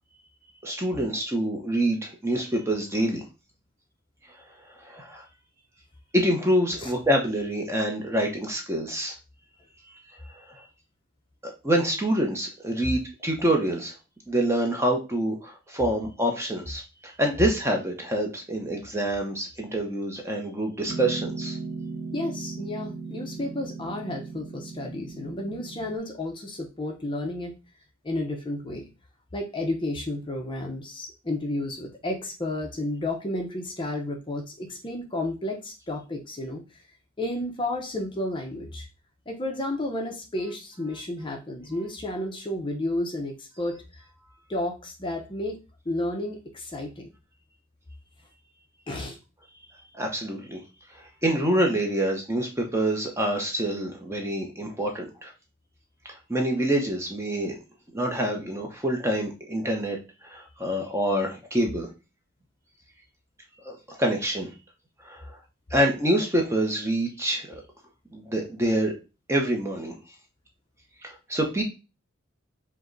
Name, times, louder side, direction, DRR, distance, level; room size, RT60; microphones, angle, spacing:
voice 1, 0.6-3.2 4.8-5.2 6.1-9.1 10.2-10.6 11.4-13.9 14.3-21.6 49.9-50.6 50.9-55.3 56.1-57.6 57.9-61.9 63.6-64.5 65.0-65.4 65.7-67.6 68.1-68.9 69.3-70.0 71.0-71.6, right 1 dB, 15° right, 2 dB, 0.6 m, -26 dB
Piano, 20.9-26.0, right 4 dB, 45° right, 0.7 m, -37 dB
voice 2, 22.1-27.5 28.0-28.9 29.3-36.8 37.2-38.9 39.3-44.0 44.5-45.6 45.8-47.1 48.9-49.2, left 1 dB, 25° left, 2 dB, 0.7 m, -32 dB
5.0 x 2.2 x 3.8 m, 0.30 s
head